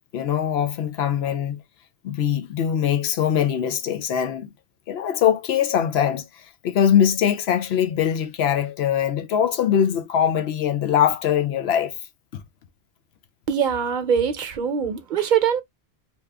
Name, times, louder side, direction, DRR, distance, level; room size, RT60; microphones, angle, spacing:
voice 1, 0.1-1.6 2.0-4.5 4.9-6.2 6.6-12.0 12.3-12.4, left 9 dB, 85° left, 0.8 m, -22 dB
voice 2, 13.5-15.6, right 7 dB, 55° right, 0.8 m, -22 dB
2.9 x 2.4 x 3.3 m
omnidirectional pair, 1.0 m